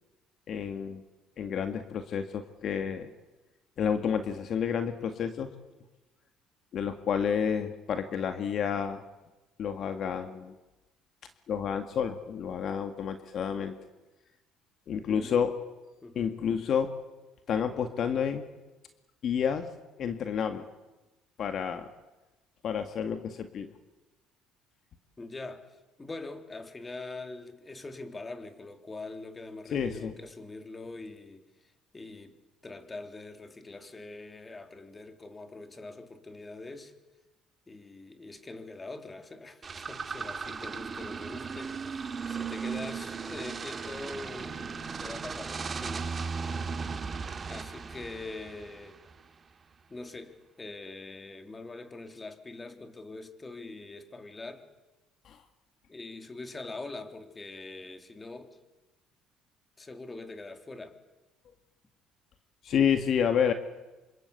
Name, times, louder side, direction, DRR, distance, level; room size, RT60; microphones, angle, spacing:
voice 1, 0.5-1.0 1.4-3.1 3.8-5.5 6.7-9.0 9.6-10.5 11.5-13.8 14.9-15.5 16.2-16.9 17.5-18.4 19.2-19.7 20.0-20.7 21.4-21.9 22.6-23.7 29.7-30.1 55.3-55.4 62.6-63.5, left 7 dB, 55° left, 2.0 m, -29 dB
voice 2, 15.1-15.4 16.0-16.3 25.2-36.9 37.7-46.1 47.5-49.0 49.9-54.6 55.9-58.6 59.8-61.0, left 2 dB, 20° left, 3.3 m, -43 dB
sound 1, 39.6-49.2, right 5 dB, 30° right, 2.0 m, -37 dB
27.5 x 26.0 x 8.4 m
supercardioid pair, 95°, 0 cm